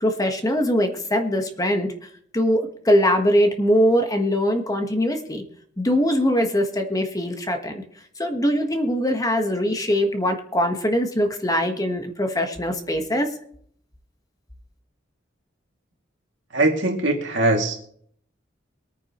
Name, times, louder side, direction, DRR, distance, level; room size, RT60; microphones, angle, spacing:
voice 1, 0.0-1.9 2.3-5.4 5.8-7.8 8.2-13.3, equal, 20° left, 5 dB, 1.3 m, -22 dB
voice 2, 16.5-17.8, right 2 dB, 75° right, 1 dB, 2.4 m, -21 dB
23.5 x 9.2 x 3.0 m, 0.65 s
head